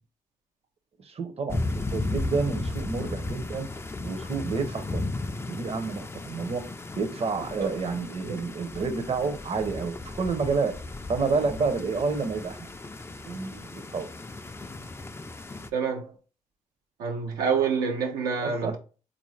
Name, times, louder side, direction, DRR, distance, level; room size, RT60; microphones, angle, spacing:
voice 1, 1.0-3.7 4.0-5.1 5.5-6.6 7.0-10.8 11.1-12.7 13.3-14.1 18.4-18.8, right 4 dB, 45° right, 0.7 m, -29 dB
sound 1, 1.5-15.7, left 2 dB, 15° left, 0.3 m, -35 dB
voice 2, 15.7-16.1 17.0-18.8, right 6 dB, 90° right, 0.6 m, -27 dB
3.6 x 2.6 x 3.1 m
supercardioid pair, 55°, 15 cm